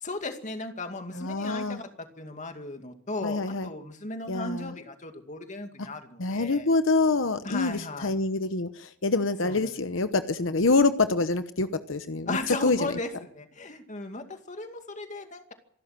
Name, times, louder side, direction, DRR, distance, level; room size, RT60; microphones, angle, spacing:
voice 1, 0.0-6.7 7.4-8.1 9.4-9.8 12.3-15.5, left 2 dB, 40° left, 6 dB, 2.4 m, -36 dB
voice 2, 1.1-1.8 3.2-3.7 4.3-4.7 5.8-5.9 6.2-13.0, left 3 dB, 85° left, 10 dB, 1.0 m, -26 dB
26.5 x 12.0 x 8.9 m, 0.66 s
head